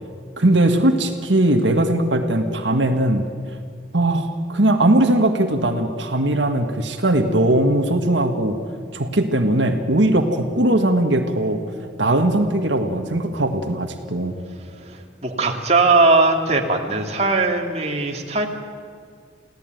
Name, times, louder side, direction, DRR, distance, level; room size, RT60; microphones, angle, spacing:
voice 1, 0.4-3.3 3.9-8.6 8.9-11.6 12.0-14.3, right 1 dB, 75° right, 5 dB, 1.8 m, -19 dB
voice 2, 14.7-18.5, right 3 dB, 35° right, 2 dB, 2.5 m, -19 dB
29.5 x 16.5 x 9.3 m, 2.2 s
head